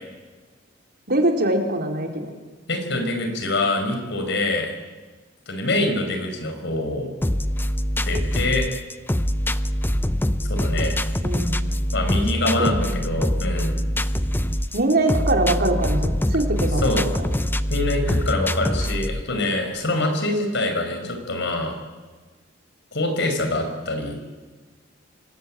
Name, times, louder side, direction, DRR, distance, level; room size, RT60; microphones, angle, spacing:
voice 1, 1.1-2.3 11.2-11.6 12.4-13.0 14.7-17.3, right 2 dB, 55° right, 3 dB, 4.2 m, -23 dB
voice 2, 2.7-4.7 5.5-7.1 8.0-8.7 10.5-11.0 11.9-13.8 16.8-17.1 17.7-21.8 22.9-24.2, left 2 dB, 65° left, 5 dB, 5.5 m, -25 dB
sound 1, 7.2-19.2, equal, 10° left, 0.8 m, -24 dB
26.0 x 22.0 x 9.0 m, 1.3 s
head